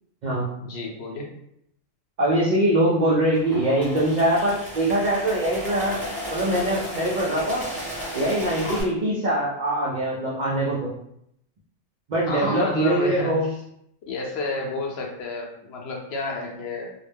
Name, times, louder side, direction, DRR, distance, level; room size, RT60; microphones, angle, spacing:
voice 1, 0.6-1.3 8.6-8.8 12.2-13.6 14.0-16.9, left 3 dB, 60° left, 0 dB, 0.8 m, -30 dB
voice 2, 2.2-6.0 6.3-7.6 8.1-10.9 12.1-13.5, right 1 dB, 65° right, -5 dB, 0.4 m, -23 dB
sound 1, 3.2-8.8, equal, 15° right, 1.0 m, -34 dB
2.3 x 2.1 x 3.3 m, 0.73 s
omnidirectional pair, 1.3 m